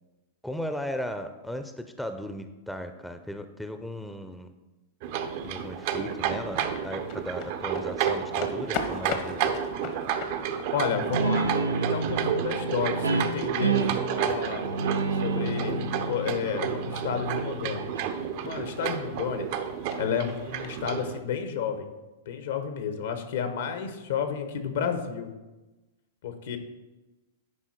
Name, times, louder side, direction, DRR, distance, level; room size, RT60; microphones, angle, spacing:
voice 1, 0.4-4.5 5.4-9.4, equal, ahead, 8 dB, 0.6 m, -36 dB
sound 1, 5.0-21.2, right 8 dB, 55° right, 0.7 m, -31 dB
sound 2, 5.2-20.9, left 6 dB, 50° left, 0.9 m, -44 dB
voice 2, 10.7-14.7 15.1-17.9 18.4-19.5 20.0-21.9 22.3-25.3 26.2-26.6, left 7 dB, 70° left, 8 dB, 1.0 m, -31 dB
Guitar, 11.1-18.3, right 3 dB, 90° right, 0.5 m, -30 dB
10.0 x 4.4 x 4.4 m, 1.1 s
hypercardioid pair, 110°, 0 cm